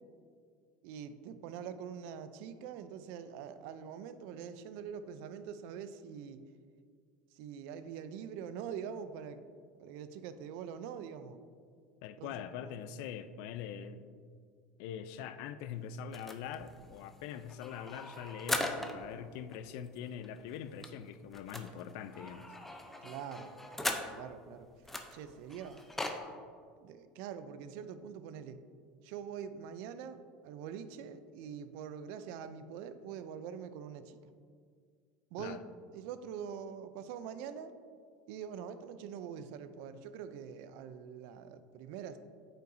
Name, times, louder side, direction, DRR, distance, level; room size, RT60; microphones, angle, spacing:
voice 1, 0.8-6.4 7.3-9.4 9.8-11.4 12.2-12.7 23.0-23.5 24.1-24.7 25.1-25.8 26.8-28.6 29.0-34.2 35.3-35.6 35.9-37.7 38.3-42.2, right 7 dB, 70° right, 12 dB, 0.4 m, -44 dB
voice 2, 12.0-14.0 14.8-22.5 35.4-35.6, left 8 dB, 70° left, 12 dB, 0.4 m, -43 dB
sound 1, 16.1-19.2 19.5-19.6 19.9-20.0 20.2-24.4 24.9-26.2, left 1 dB, 5° left, 0.6 m, -40 dB
8.7 x 5.5 x 2.6 m, 2.1 s
supercardioid pair, 115°, 4 cm